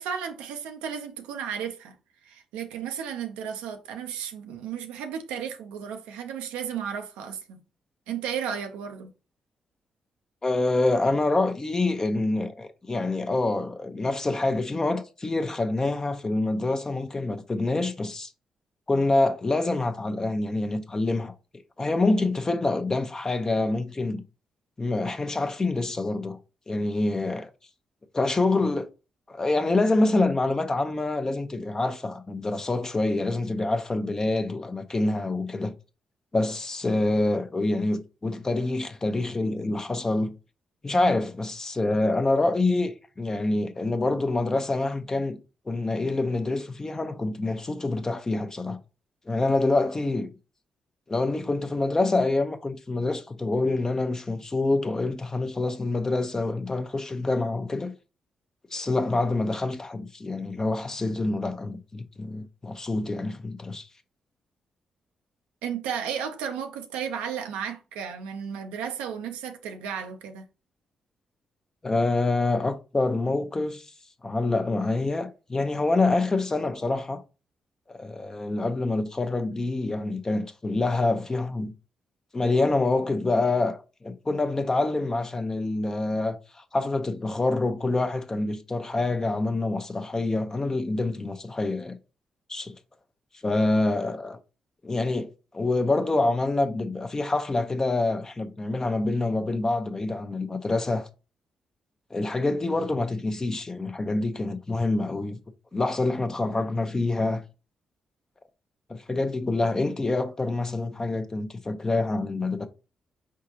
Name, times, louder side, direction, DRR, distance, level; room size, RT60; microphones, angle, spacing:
voice 1, 0.0-2.0 2.2-7.6 8.1-9.1 65.6-70.4, right 8 dB, 85° right, 0.6 m, -34 dB
voice 2, 10.4-18.3 18.9-21.3 21.8-24.2 24.8-26.4 26.7-27.5 28.1-28.9 29.3-35.7 36.3-40.3 40.8-45.4 45.7-48.8 49.3-50.3 51.1-57.9 58.7-63.9 71.8-73.9 74.2-77.2 77.9-81.7 82.3-92.0 92.5-92.8 93.4-94.4 94.8-95.3 95.5-101.1 102.1-105.4 105.7-107.4 108.9-112.7, left 2 dB, 30° left, 0.8 m, -26 dB
4.8 x 3.7 x 2.9 m
hypercardioid pair, 45°, 2 cm